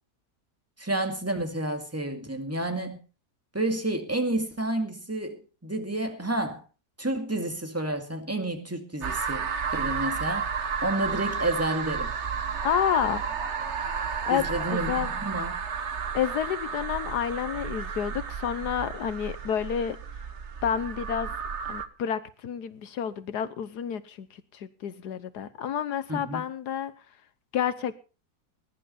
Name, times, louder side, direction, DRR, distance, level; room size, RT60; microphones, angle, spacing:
voice 1, 0.8-3.0 3.5-6.6 7.0-10.5 10.8-12.1 14.3-15.6 26.1-26.4, right 1 dB, 10° right, 2.0 m, -30 dB
sound 1, 9.0-21.9, right 6 dB, 45° right, 1.3 m, -32 dB
voice 2, 12.6-13.2 14.2-15.1 16.1-20.0 20.6-21.3 21.6-24.3 24.5-26.9 27.5-27.9, left 9 dB, 75° left, 1.5 m, -29 dB
20.5 x 11.0 x 4.2 m
omnidirectional pair, 1.8 m